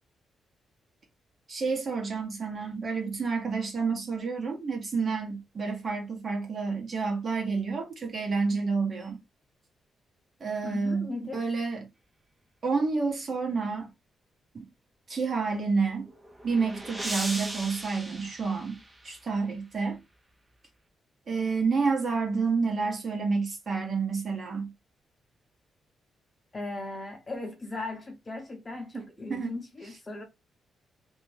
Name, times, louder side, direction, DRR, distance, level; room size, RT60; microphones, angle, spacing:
voice 1, 1.5-9.2 10.4-11.8 12.6-13.9 14.5-14.6 15.1-16.1 16.4-18.8 19.0-20.0 21.3-24.7 28.9-29.0 29.3-29.5, right 4 dB, 40° right, 1.0 m, -29 dB
voice 2, 10.6-11.5 26.5-30.2, left 2 dB, 25° left, 0.8 m, -38 dB
sound 1, 15.9-19.3, right 1 dB, 10° right, 0.5 m, -38 dB
2.5 x 2.2 x 3.1 m
cardioid pair, 120°, 0 cm